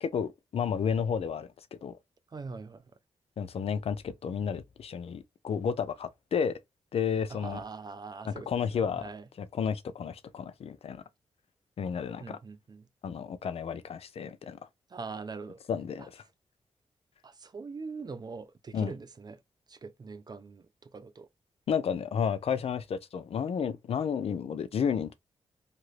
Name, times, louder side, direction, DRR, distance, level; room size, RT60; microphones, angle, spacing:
voice 1, 0.0-1.5 1.8-1.9 3.4-6.6 6.9-7.6 8.2-9.0 9.4-11.0 11.8-12.4 13.0-14.6 15.7-16.2 18.7-18.9 21.7-25.1, left 7 dB, 65° left, 0.5 m, -31 dB
voice 2, 2.3-2.8 7.3-9.2 12.2-12.9 14.9-15.6 16.0-16.1 17.2-19.4 19.7-21.3, right 4 dB, 40° right, 0.5 m, -42 dB
2.9 x 2.5 x 3.1 m
cardioid pair, 75°, 11 cm